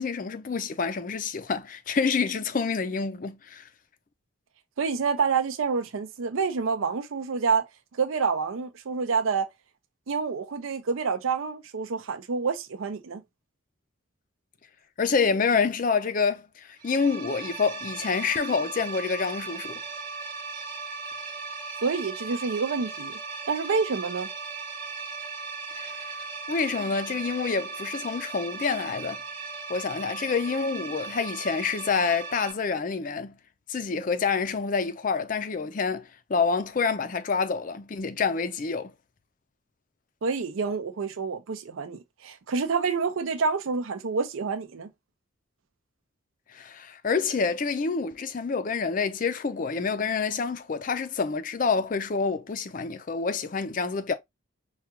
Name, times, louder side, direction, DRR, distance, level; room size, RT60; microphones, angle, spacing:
voice 1, 0.0-3.7 15.0-19.8 25.7-26.2 26.5-29.2 29.7-33.4 33.7-38.9 46.5-54.1, left 5 dB, 40° left, 0.4 m, -27 dB
voice 2, 4.8-7.7 7.9-9.5 10.1-13.2 21.8-23.2 23.5-24.3 40.2-44.9, right 5 dB, 75° right, 0.5 m, -28 dB
sound 1, 16.8-32.5, right 4 dB, 20° right, 0.9 m, -37 dB
4.7 x 2.3 x 2.8 m
head